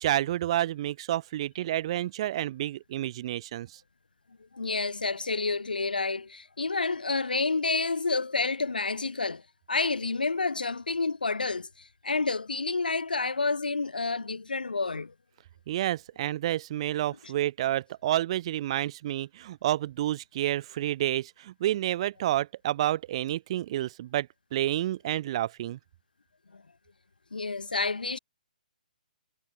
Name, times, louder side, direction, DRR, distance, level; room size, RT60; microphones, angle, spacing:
voice 1, 0.0-3.7 15.7-25.8, right 13 dB, 40° right, 1.8 m, -29 dB
voice 2, 4.5-9.4 9.7-15.1 26.5-26.6 27.3-28.2, left 4 dB, 80° left, 1.6 m, -29 dB
figure-of-eight pair, 135°, 5 cm